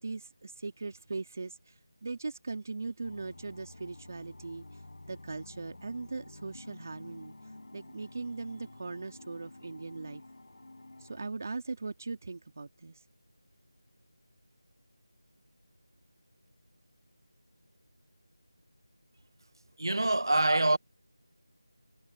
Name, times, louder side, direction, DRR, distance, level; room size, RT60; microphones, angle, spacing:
voice 1, 0.0-4.8 5.1-7.3 7.7-10.2 11.0-13.0, right 3 dB, 40° right, 2.3 m, -39 dB
sound 1, 3.0-11.3, left 2 dB, 60° left, 7.5 m, -50 dB
voice 2, 19.8-20.8, right 2 dB, 60° right, 1.2 m, -25 dB
figure-of-eight pair, 165°, 2 cm